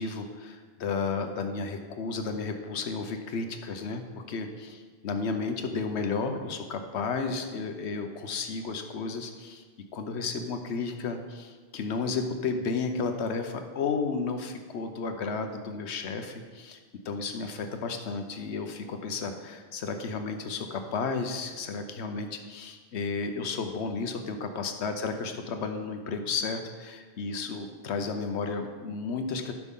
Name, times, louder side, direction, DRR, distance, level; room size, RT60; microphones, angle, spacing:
voice 1, 0.0-4.0 4.3-9.6 9.9-16.8 17.0-29.5, left 4 dB, 80° left, 6 dB, 1.1 m, -33 dB
12.0 x 5.9 x 3.7 m, 1.5 s
omnidirectional pair, 1.1 m